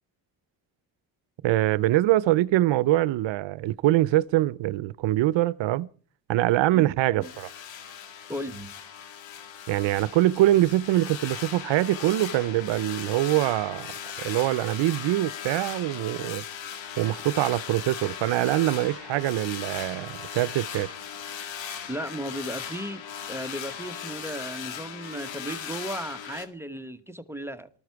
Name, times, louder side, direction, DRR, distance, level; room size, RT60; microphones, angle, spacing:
voice 1, 1.4-5.9 6.3-7.5 9.7-13.9 14.2-16.4 17.0-20.9, right 15 dB, 80° right, 0.6 m, -24 dB
sound 1, 7.2-26.5, left 8 dB, 85° left, 2.0 m, -38 dB
voice 2, 8.3-8.7 21.9-23.0 23.3-27.7, right 1 dB, 5° right, 1.2 m, -35 dB
19.5 x 13.5 x 4.7 m
cardioid pair, 90°, 44 cm